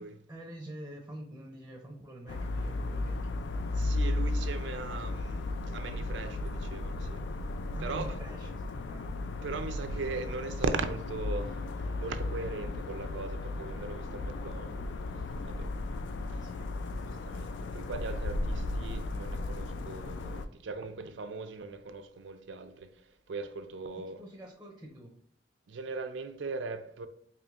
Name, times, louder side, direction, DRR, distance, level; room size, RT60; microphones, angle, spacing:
voice 1, 0.0-3.8 7.7-9.1 16.3-17.2 23.9-25.2, right 1 dB, 10° right, 0.5 m, -47 dB
sound 1, 2.3-20.5, left 2 dB, 80° left, 0.3 m, -35 dB
voice 2, 3.7-7.3 7.8-8.1 9.4-15.0 15.4-15.7 17.1-24.2 25.7-27.1, right 3 dB, 85° right, 0.5 m, -39 dB
4.9 x 2.9 x 2.4 m
head